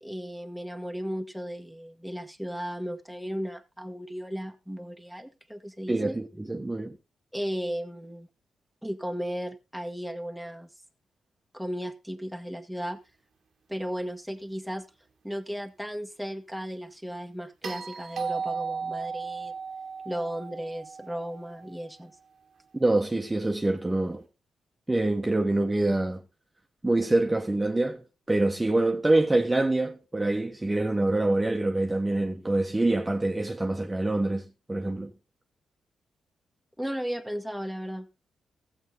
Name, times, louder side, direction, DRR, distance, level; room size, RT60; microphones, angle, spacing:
voice 1, 0.0-6.2 7.3-8.3 8.8-10.7 11.5-13.0 13.7-14.9 15.2-19.6 20.1-22.1 36.8-38.1, equal, ahead, 1.7 m, -35 dB
voice 2, 5.9-7.0 22.7-24.2 24.9-26.2 26.8-35.1, right 2 dB, 20° right, 1.4 m, -25 dB
sound 1, 17.6-21.9 24.1-24.2, right 5 dB, 60° right, 1.4 m, -36 dB
14.5 x 7.8 x 4.1 m
supercardioid pair, 50°, 0 cm